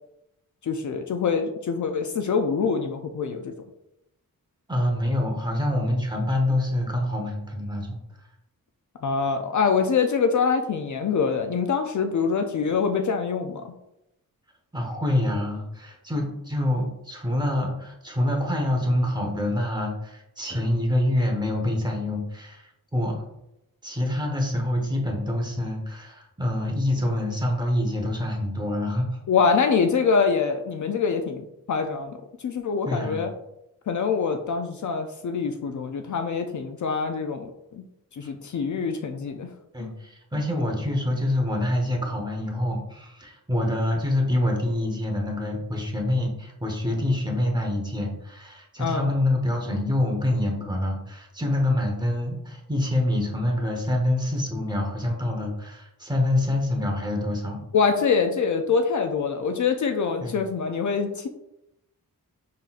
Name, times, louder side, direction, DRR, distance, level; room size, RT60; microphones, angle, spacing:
voice 1, 0.6-3.5 9.0-13.7 29.3-32.2 32.4-33.3 33.9-37.8 38.1-39.5 39.8-39.9 48.8-49.1 57.7-61.3, left 5 dB, 55° left, 6 dB, 0.5 m, -25 dB
voice 2, 4.7-8.3 14.7-23.2 23.8-29.2 32.8-33.2 38.2-38.3 39.7-57.6 60.2-60.4, left 1 dB, 10° right, 0 dB, 1.0 m, -26 dB
5.6 x 3.8 x 2.4 m, 0.86 s
wide cardioid pair, 110°, 36 cm